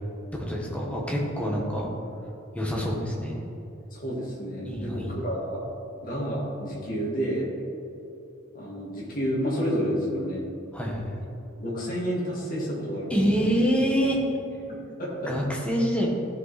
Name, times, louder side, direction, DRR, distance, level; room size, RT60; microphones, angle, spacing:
voice 1, 0.5-1.9 2.5-3.4 4.6-5.3 10.7-11.1 13.1-14.2 15.3-16.1, equal, 5° left, -3 dB, 1.4 m, -26 dB
voice 2, 3.9-5.7 6.0-7.5 8.5-10.5 11.6-13.6 14.7-15.3, equal, 40° left, -5 dB, 2.1 m, -30 dB
14.5 x 5.4 x 4.2 m, 2.8 s
head